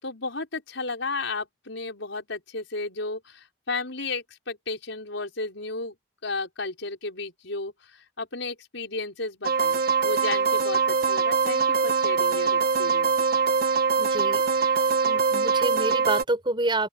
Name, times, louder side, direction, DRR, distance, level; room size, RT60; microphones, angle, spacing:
voice 1, 0.0-6.0 6.2-13.3, left 3 dB, 75° left, 5.4 m, -33 dB
sound 1, 9.4-16.2, right 5 dB, 50° right, 1.4 m, -23 dB
voice 2, 14.0-16.9, right 2 dB, 25° right, 4.6 m, -29 dB
open air
head